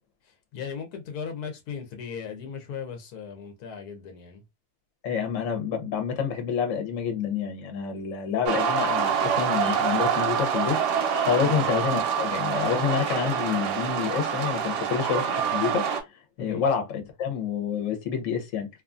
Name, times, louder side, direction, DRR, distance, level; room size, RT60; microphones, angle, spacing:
voice 1, 0.2-4.4 11.4-11.6 16.4-16.7, left 6 dB, 85° left, 1.2 m, -37 dB
voice 2, 5.0-10.8 11.2-16.1 16.4-18.7, left 7 dB, 60° left, 1.1 m, -28 dB
sound 1, 8.5-16.0, right 7 dB, 65° right, 0.8 m, -26 dB
2.7 x 2.4 x 2.4 m
omnidirectional pair, 1.6 m